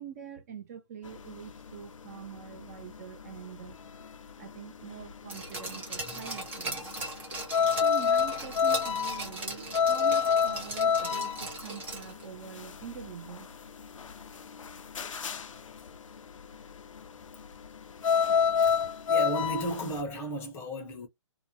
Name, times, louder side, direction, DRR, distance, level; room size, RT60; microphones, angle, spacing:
voice 1, 0.0-3.8 4.4-6.9 7.3-7.4 7.8-13.5, right 8 dB, 30° right, 0.5 m, -44 dB
sound 1, 1.0-20.0, left 7 dB, 85° left, 0.4 m, -29 dB
Glass, 5.3-12.2 12.6-12.7, right 2 dB, 10° right, 0.8 m, -39 dB
voice 2, 19.1-21.1, right 1 dB, 15° left, 0.6 m, -34 dB
2.4 x 2.1 x 2.8 m
hypercardioid pair, 150°, 16 cm